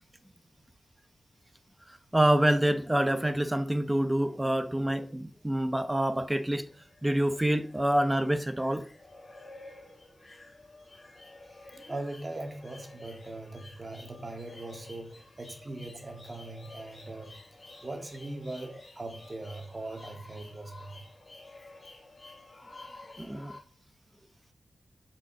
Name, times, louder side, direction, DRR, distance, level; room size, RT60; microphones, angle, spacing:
voice 1, 2.1-6.7 7.0-8.9 23.2-23.6, right 1 dB, 10° right, 0.9 m, -26 dB
sound 1, 6.7-23.6, left 2 dB, 30° left, 2.4 m, -51 dB
voice 2, 11.4-17.4 17.8-21.1, right 2 dB, 35° right, 2.2 m, -41 dB
8.5 x 5.5 x 6.3 m
wide cardioid pair, 95°, 0 cm